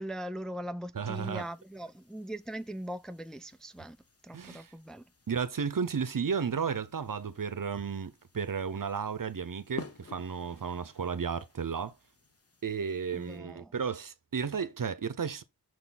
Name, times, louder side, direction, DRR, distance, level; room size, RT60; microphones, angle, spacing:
voice 1, 0.0-4.0 4.2-5.1 13.1-13.7, right 1 dB, ahead, 0.4 m, -40 dB
voice 2, 0.9-1.5 4.3-4.7 5.3-12.0 12.6-15.4, right 6 dB, 60° right, 0.8 m, -33 dB
sound 1, 1.1-13.4, left 3 dB, 40° left, 1.2 m, -53 dB
6.3 x 4.0 x 4.3 m
wide cardioid pair, 55°, 37 cm